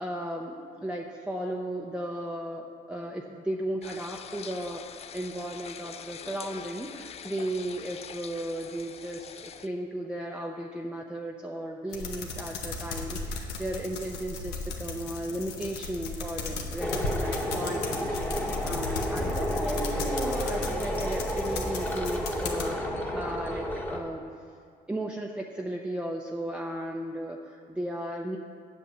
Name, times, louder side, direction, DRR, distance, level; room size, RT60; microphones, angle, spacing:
voice 1, 0.0-22.8 23.1-23.7 23.9-24.2 24.9-28.4, right 1 dB, 5° right, -1 dB, 0.7 m, -35 dB
sound 1, 3.8-9.7, left 8 dB, 40° left, 0.5 m, -44 dB
sound 2, 11.9-22.7, left 3 dB, 90° left, 1.3 m, -36 dB
sound 3, 16.8-24.0, equal, 10° left, 1.3 m, -31 dB
8.4 x 7.9 x 7.1 m, 2.1 s
cardioid pair, 110°, 17 cm